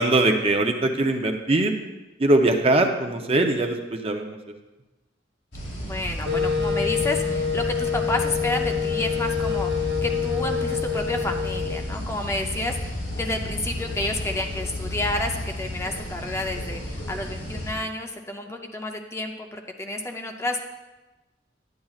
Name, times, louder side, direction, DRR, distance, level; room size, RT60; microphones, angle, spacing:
voice 1, 0.0-1.7 2.2-4.4, right 2 dB, 35° right, 4 dB, 0.7 m, -21 dB
sound 1, 5.5-17.7, left 1 dB, 85° left, 2.4 m, -33 dB
voice 2, 5.8-20.7, left 1 dB, 15° left, 3 dB, 0.6 m, -30 dB
Wind instrument woodwind instrument, 6.3-11.9, left 6 dB, 65° right, 0.8 m, -26 dB
10.5 x 9.9 x 2.4 m, 1.1 s
head